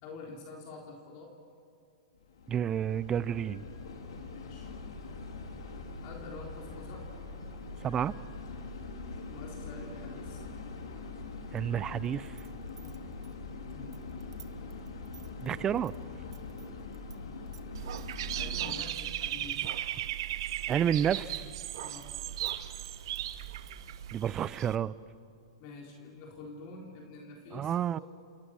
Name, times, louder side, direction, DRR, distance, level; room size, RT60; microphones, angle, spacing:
voice 1, 0.0-1.3 4.3-4.7 6.0-7.1 9.3-10.4 13.7-13.9 18.3-19.6 21.8-22.1 25.6-28.0, left 3 dB, 45° left, 3.8 m, -47 dB
sound 1, 2.2-18.8, left 3 dB, 80° left, 3.7 m, -43 dB
voice 2, 2.5-3.6 7.8-8.1 11.5-12.4 15.4-15.9 20.7-21.5 24.1-24.9 27.5-28.0, right 9 dB, 25° right, 0.6 m, -30 dB
sound 2, 12.0-17.2 17.5-18.4 19.0-20.8 21.1-23.9, right 10 dB, 80° right, 1.7 m, -56 dB
Dog / Bird, 17.7-24.8, right 12 dB, 60° right, 1.2 m, -36 dB
30.0 x 27.5 x 6.4 m
hypercardioid pair, 130°, 3 cm